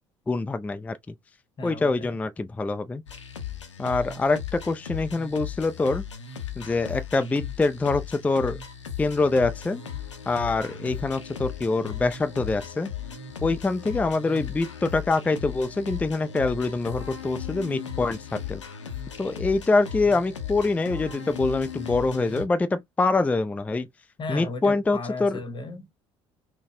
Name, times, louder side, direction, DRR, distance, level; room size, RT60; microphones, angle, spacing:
voice 1, 0.3-1.0 1.6-3.0 3.8-6.0 6.6-8.6 9.0-9.8 10.3-12.9 13.4-18.6 19.2-23.9 24.3-25.4, left 3 dB, 10° left, 0.4 m, -25 dB
voice 2, 1.6-2.2 24.2-26.0, left 3 dB, 30° left, 1.0 m, -35 dB
sound 1, 3.1-22.4, left 8 dB, 85° left, 0.6 m, -37 dB
3.9 x 2.1 x 2.6 m
figure-of-eight pair, 55°, 15 cm